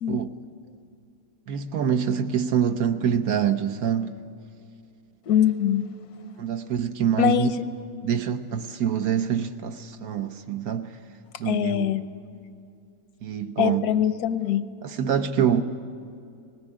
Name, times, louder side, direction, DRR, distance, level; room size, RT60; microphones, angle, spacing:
voice 1, 1.5-4.1 6.4-7.5 8.0-10.9 11.4-11.9 13.2-13.8 14.8-15.6, right 8 dB, 75° right, 1.3 m, -25 dB
voice 2, 5.3-5.9 7.2-7.7 11.5-12.0 13.6-14.7, left 10 dB, 85° left, 1.3 m, -23 dB
19.5 x 17.0 x 9.7 m
omnidirectional pair, 1.6 m